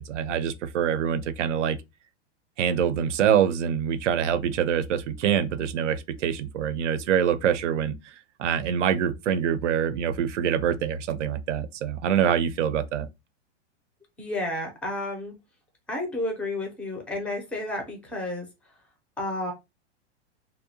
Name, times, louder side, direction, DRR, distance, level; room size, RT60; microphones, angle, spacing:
voice 1, 0.0-1.8 2.6-8.1 8.4-13.1, right 8 dB, 90° right, 0.5 m, -25 dB
voice 2, 14.2-15.3 15.9-18.5 19.2-19.5, left 2 dB, 5° left, 0.4 m, -31 dB
2.6 x 2.1 x 2.6 m
supercardioid pair, 140°, 35 cm